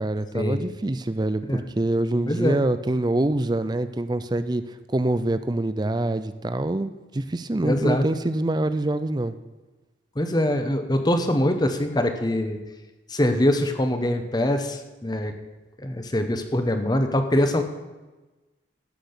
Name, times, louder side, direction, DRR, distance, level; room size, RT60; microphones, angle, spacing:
voice 1, 0.0-4.6 4.9-9.3, right 1 dB, 20° right, 12 dB, 0.5 m, -25 dB
voice 2, 2.3-2.6 7.6-8.0 10.2-12.6 13.1-15.3 15.8-17.6, left 1 dB, 20° left, 7 dB, 0.9 m, -23 dB
13.5 x 6.1 x 6.7 m, 1.2 s
head